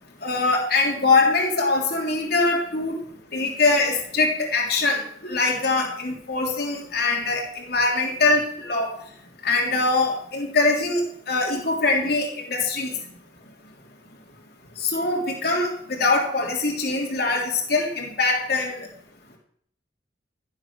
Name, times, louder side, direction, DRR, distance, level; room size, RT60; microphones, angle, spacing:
voice 1, 0.2-2.9 3.3-8.9 9.4-12.9 14.8-18.9, left 3 dB, 55° left, -1 dB, 3.5 m, -23 dB
15.0 x 8.1 x 6.3 m, 0.64 s
head